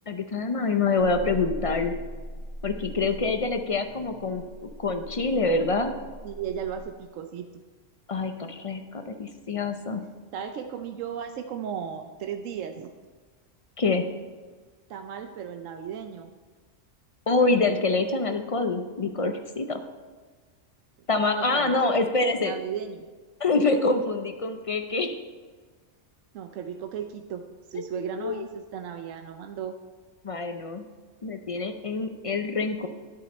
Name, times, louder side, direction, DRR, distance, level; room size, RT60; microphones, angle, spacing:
voice 1, 0.1-2.0 2.6-5.9 8.1-10.0 13.8-14.0 17.3-19.8 21.1-22.5 23.4-25.2 27.7-27.8 28.2-28.5 30.2-30.8 31.2-32.9, left 3 dB, 40° left, 7 dB, 0.5 m, -26 dB
sound 1, 1.0-6.8, equal, 5° right, 2.8 m, -41 dB
voice 2, 6.2-7.5 10.3-12.9 14.9-16.3 21.2-22.1 22.4-23.0 26.3-27.4 27.7-29.8, right 8 dB, 90° right, 6 dB, 1.0 m, -35 dB
10.5 x 7.8 x 4.2 m, 1.4 s
omnidirectional pair, 1.3 m